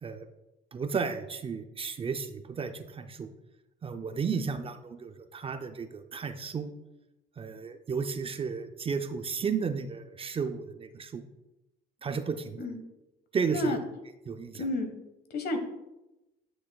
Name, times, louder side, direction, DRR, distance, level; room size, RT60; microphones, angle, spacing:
voice 1, 0.7-3.3 3.8-6.7 7.4-11.2 12.0-12.7 13.3-13.8 14.3-14.6, right 5 dB, 30° right, 8 dB, 0.5 m, -33 dB
voice 2, 14.6-14.9 15.3-15.6, left 1 dB, 60° left, 7 dB, 1.3 m, -31 dB
10.0 x 6.2 x 2.3 m, 0.96 s
cardioid pair, 95°, 18 cm